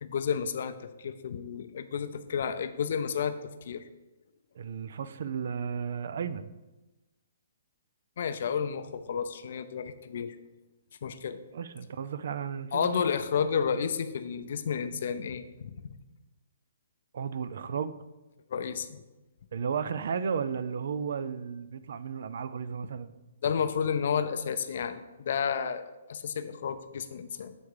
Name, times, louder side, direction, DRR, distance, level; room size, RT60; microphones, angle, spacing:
voice 1, 0.0-3.8 8.2-10.4 11.0-11.4 12.7-15.9 18.5-19.0 23.4-27.5, left 7 dB, 60° left, 11 dB, 0.5 m, -31 dB
voice 2, 4.6-6.5 11.5-13.0 17.1-18.0 19.5-23.1, right 6 dB, 60° right, 13 dB, 0.4 m, -34 dB
8.0 x 3.6 x 4.8 m, 1.1 s
hypercardioid pair, 160°, 0 cm